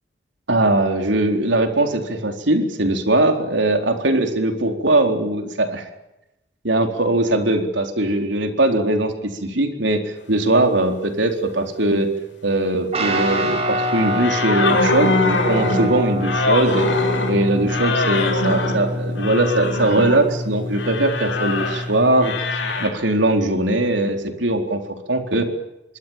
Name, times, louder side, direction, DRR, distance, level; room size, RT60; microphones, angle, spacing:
voice 1, 0.5-5.9 6.6-12.1 12.4-16.9 17.3-22.5 22.8-24.8 25.1-25.5, right 2 dB, 85° right, 5 dB, 4.2 m, -20 dB
Guitar, 12.9-22.8, equal, 35° right, 5.8 m, -26 dB
sound 1, 14.2-20.2 20.7-21.9 22.2-22.9, left 3 dB, 90° left, 7.6 m, -23 dB
25.5 x 24.0 x 7.4 m, 0.90 s
head